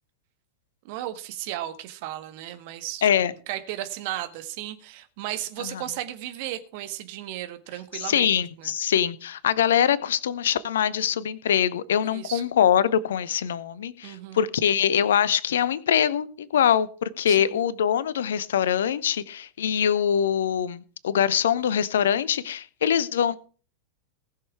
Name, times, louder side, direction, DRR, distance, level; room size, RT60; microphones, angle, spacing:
voice 1, 0.8-3.1 3.5-8.7 12.1-12.4 14.0-14.4 17.3-17.6, right 13 dB, 50° right, 1.6 m, -35 dB
voice 2, 3.0-3.3 5.6-5.7 8.0-23.4, left 9 dB, 60° left, 0.8 m, -23 dB
19.0 x 6.6 x 4.8 m
figure-of-eight pair, 90°, 0 cm